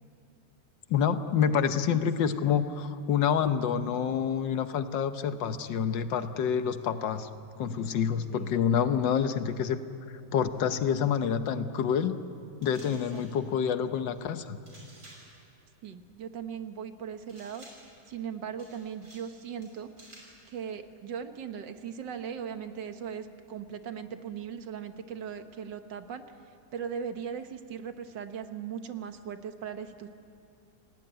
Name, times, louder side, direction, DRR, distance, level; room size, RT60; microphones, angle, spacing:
voice 1, 0.9-7.3 7.6-9.8 10.3-12.2 12.6-14.6, left 7 dB, 85° left, 10 dB, 1.7 m, -27 dB
sound 1, 12.6-13.4 14.7-15.4 17.3-18.0 18.6-19.3 19.6-20.4, right 1 dB, 45° right, 6.5 m, -53 dB
voice 2, 12.8-13.6 15.8-17.7 18.1-19.9 20.5-26.2 26.7-30.1, right 7 dB, 80° right, 8 dB, 1.9 m, -39 dB
28.0 x 18.5 x 8.9 m, 2.7 s
omnidirectional pair, 1.9 m